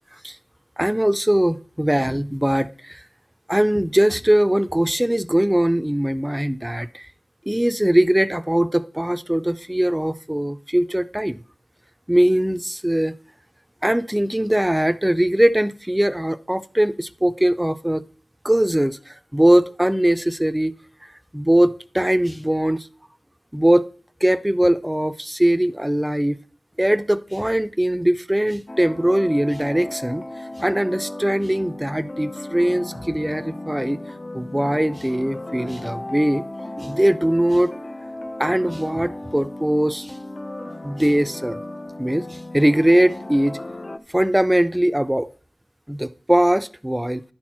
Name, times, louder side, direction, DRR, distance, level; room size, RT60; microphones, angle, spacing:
voice 1, 0.8-3.0 3.5-7.1 7.5-11.4 12.1-13.1 13.8-18.0 18.4-20.8 21.3-22.9 23.5-23.9 24.2-26.4 26.8-30.2 30.6-34.0 34.3-36.4 36.8-37.7 38.4-40.1 40.8-41.6 42.0-43.6 44.1-45.3 45.9-47.2, right 1 dB, 10° right, 0.5 m, -20 dB
sound 1, 28.7-44.0, left 1 dB, 35° left, 0.6 m, -35 dB
10.5 x 4.4 x 6.0 m
wide cardioid pair, 65°, 0 cm